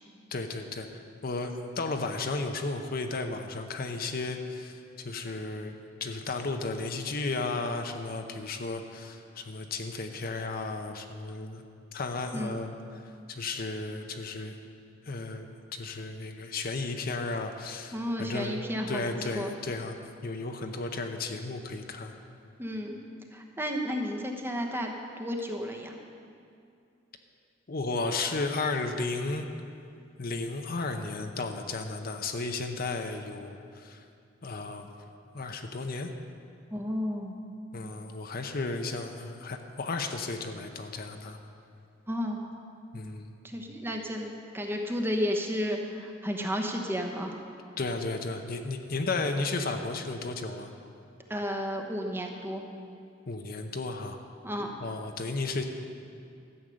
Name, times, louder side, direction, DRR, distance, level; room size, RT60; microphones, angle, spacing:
voice 1, 0.3-5.7 6.0-11.6 11.9-12.7 13.3-14.5 15.1-18.6 18.9-20.0 20.2-22.1 27.7-29.5 30.2-34.0 34.4-34.9 35.3-36.1 37.7-41.4 42.9-43.3 47.8-50.7 53.3-54.2 54.8-55.6, left 3 dB, 50° left, 5 dB, 0.7 m, -34 dB
voice 2, 17.9-19.5 22.6-23.0 23.3-25.9 36.7-37.4 42.1-42.4 43.4-47.4 51.3-52.6 54.4-54.7, equal, 10° right, 2 dB, 1.0 m, -32 dB
12.5 x 8.2 x 6.3 m, 2.5 s
head